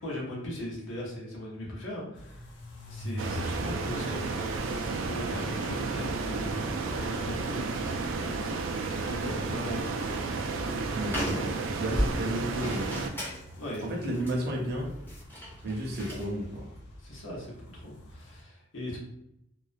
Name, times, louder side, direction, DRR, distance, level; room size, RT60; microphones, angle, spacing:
voice 1, 0.0-2.5 2.9-8.4 8.7-10.7 11.9-12.0 13.5-14.1 17.0-19.0, equal, 90° left, -3 dB, 0.8 m, -39 dB
sound 1, 2.1-18.4, equal, 60° left, 0.5 m, -45 dB
sound 2, 3.2-13.1, right 4 dB, 85° right, 0.3 m, -32 dB
voice 2, 10.9-13.1 13.8-14.9 15.6-16.6, right 1 dB, 55° right, -1 dB, 0.6 m, -33 dB
sound 3, 11.1-16.3, equal, 10° left, 0.5 m, -36 dB
2.4 x 2.1 x 2.5 m, 0.78 s
head